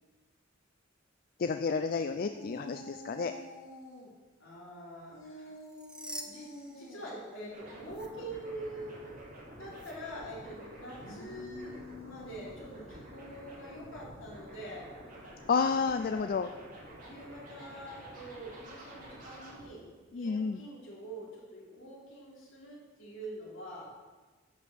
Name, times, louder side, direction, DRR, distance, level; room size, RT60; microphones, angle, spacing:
voice 1, 1.4-3.3 15.5-16.5 20.1-20.6, left 5 dB, 45° left, 8 dB, 0.4 m, -30 dB
sound 1, 2.1-4.1 5.1-7.1 10.9-13.1, left 1 dB, 90° left, 2.3 m, -49 dB
voice 2, 4.4-5.5 6.2-9.2 9.6-15.0 16.0-16.3 17.0-23.9, right 1 dB, 70° left, -4 dB, 3.7 m, -45 dB
sound 2, 5.5-7.5 7.8-8.1 9.7-9.9, right 1 dB, 5° right, 0.7 m, -46 dB
sound 3, 7.5-19.7, right 1 dB, 45° right, 3.1 m, -49 dB
11.5 x 5.4 x 7.5 m, 1.3 s
head